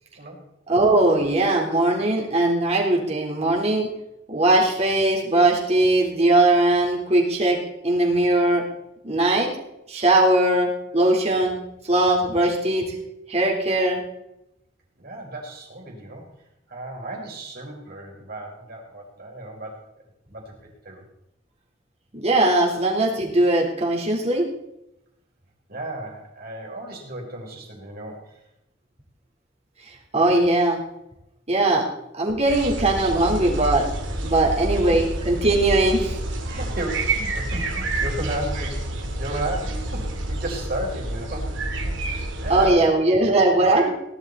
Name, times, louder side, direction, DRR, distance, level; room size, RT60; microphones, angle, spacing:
voice 1, 0.7-3.9 4.3-7.6 7.8-8.6 9.0-9.5 9.9-11.6 11.9-12.8 13.3-14.0 22.1-24.5 30.1-30.8 31.5-31.8 32.1-33.9 34.2-36.2 42.5-43.9, right 2 dB, 35° right, -1 dB, 3.7 m, -20 dB
voice 2, 15.0-16.3 16.7-19.8 20.3-21.0 25.7-28.4 34.7-35.1 36.5-41.6 41.8-43.0 43.6-43.9, right 1 dB, 55° right, 0 dB, 4.8 m, -34 dB
sound 1, 32.5-42.7, right 2 dB, 90° right, 2.7 m, -28 dB
18.5 x 12.0 x 4.1 m, 0.86 s
head